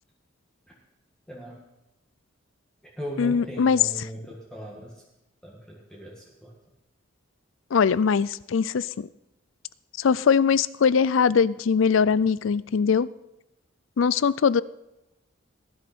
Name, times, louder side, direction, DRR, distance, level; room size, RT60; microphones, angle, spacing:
voice 1, 1.3-1.7 3.0-5.0 5.4-6.6, equal, 5° left, -3 dB, 1.8 m, -39 dB
voice 2, 3.2-3.8 7.7-9.1 10.0-13.1 14.0-14.6, left 6 dB, 70° left, 19 dB, 0.4 m, -21 dB
19.0 x 11.0 x 4.4 m, 0.93 s
head